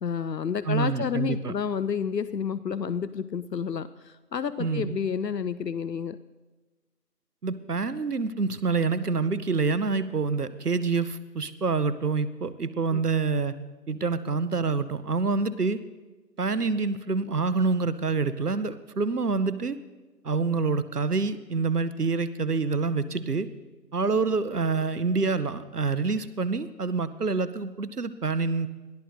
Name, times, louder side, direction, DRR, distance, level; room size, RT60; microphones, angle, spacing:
voice 1, 0.0-6.2 12.9-13.0, left 7 dB, 80° left, 15 dB, 0.6 m, -30 dB
voice 2, 0.7-1.5 4.6-5.0 7.4-13.5 13.9-15.8 16.4-19.8 20.2-23.5 23.9-28.7, right 4 dB, 70° right, 15 dB, 0.8 m, -27 dB
21.0 x 13.5 x 2.6 m, 1.2 s
figure-of-eight pair, 170°, 49 cm